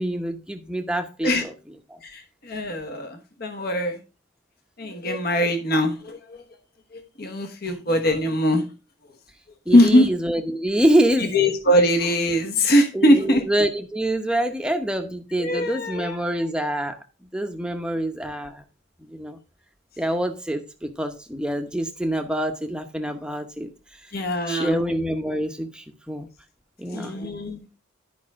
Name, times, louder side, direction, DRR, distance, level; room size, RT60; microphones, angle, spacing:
voice 1, 0.0-1.5 1.9-2.0 9.7-11.3 12.9-17.0 17.3-18.6 19.1-19.4 20.0-23.7 24.5-26.3 26.8-27.1, right 1 dB, 5° right, 0.8 m, -26 dB
voice 2, 2.0-4.0 4.8-6.4 6.9-8.6 9.7-10.1 11.2-13.4 15.4-16.2 24.1-24.8 26.9-27.6, left 1 dB, 50° left, 1.1 m, -21 dB
10.5 x 5.4 x 3.6 m
head